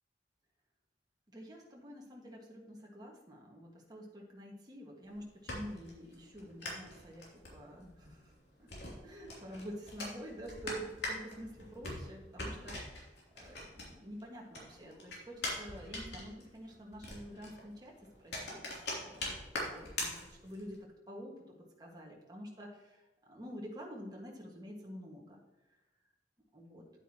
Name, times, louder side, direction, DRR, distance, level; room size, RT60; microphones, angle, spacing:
voice 1, 1.3-7.2 7.5-8.3 8.6-8.7 9.0-17.9 18.2-18.6 18.9-25.4 26.5-26.8, equal, 25° right, -2 dB, 1.8 m, -48 dB
sound 1, 5.0-14.2 14.5-20.8, left 2 dB, 65° left, 3.0 m, -43 dB
9.8 x 8.7 x 3.0 m, 1.0 s
head